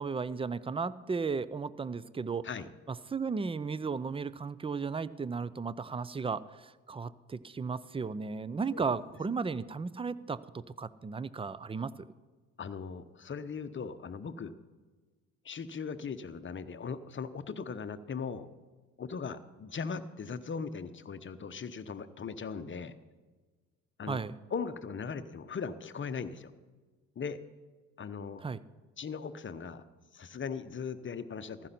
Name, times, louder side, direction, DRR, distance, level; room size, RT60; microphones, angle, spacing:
voice 1, 0.0-2.5 2.9-11.9 24.1-24.4 28.4-28.6, right 5 dB, 15° right, 18 dB, 0.5 m, -35 dB
voice 2, 12.6-14.5 15.4-18.5 19.0-22.9 24.0-24.2 24.5-26.5 27.2-27.4 28.0-28.4 29.0-29.8 30.1-31.7, left 5 dB, 30° left, 12 dB, 0.9 m, -39 dB
15.0 x 12.5 x 4.3 m, 1.3 s
hypercardioid pair, 55°, 40 cm